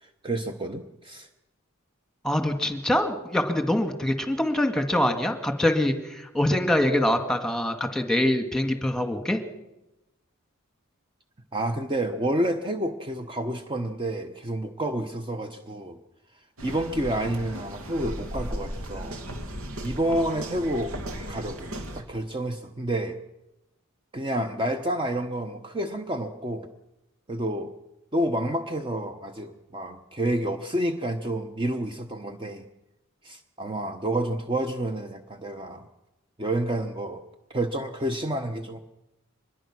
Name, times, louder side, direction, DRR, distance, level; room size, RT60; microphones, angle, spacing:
voice 1, 0.0-1.3 11.5-16.0 16.6-19.2 19.8-21.0 21.3-21.7 21.9-23.2 24.1-26.7 27.3-27.7 28.1-32.7 33.2-35.9 36.4-37.2 37.5-38.8, right 1 dB, 25° right, 6 dB, 1.1 m, -29 dB
voice 2, 2.2-9.4, left 1 dB, 5° left, 5 dB, 2.0 m, -24 dB
sound 1, 16.6-22.0, equal, 90° right, 2.6 m, -36 dB
24.5 x 21.0 x 6.1 m, 0.95 s
head